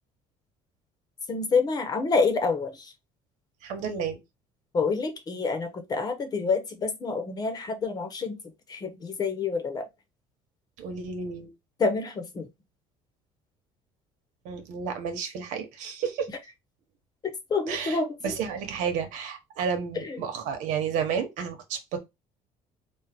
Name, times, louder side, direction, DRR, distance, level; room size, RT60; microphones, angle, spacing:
voice 1, 1.3-2.9 4.7-8.4 8.7-9.9 11.8-12.5 17.5-18.3 20.0-20.2, left 4 dB, 30° left, 1.0 m, -27 dB
voice 2, 3.6-4.2 10.8-11.5 14.4-16.3 17.7-22.0, right 6 dB, 75° right, 1.2 m, -31 dB
3.7 x 2.4 x 4.3 m
cardioid pair, 130°, 13 cm